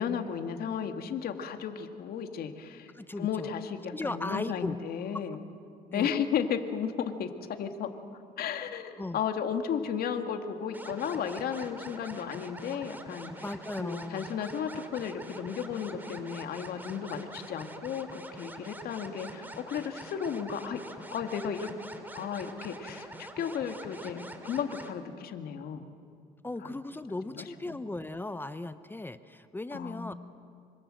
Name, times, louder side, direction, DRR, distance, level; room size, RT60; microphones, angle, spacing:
voice 1, 0.0-2.9 3.2-5.4 5.9-7.9 8.4-13.3 13.8-20.8 21.1-21.7 22.1-25.8 27.3-27.8 29.7-30.1, left 7 dB, 65° left, 6 dB, 2.2 m, -34 dB
voice 2, 2.9-3.5 3.9-4.8 5.1-5.2 5.9-6.1 9.0-9.2 13.4-14.4 26.4-30.1, left 2 dB, 10° left, 11 dB, 0.9 m, -37 dB
sound 1, 10.7-24.9, right 1 dB, 10° right, 2.7 m, -45 dB
26.5 x 25.5 x 7.8 m, 2.4 s
cardioid pair, 110°, 17 cm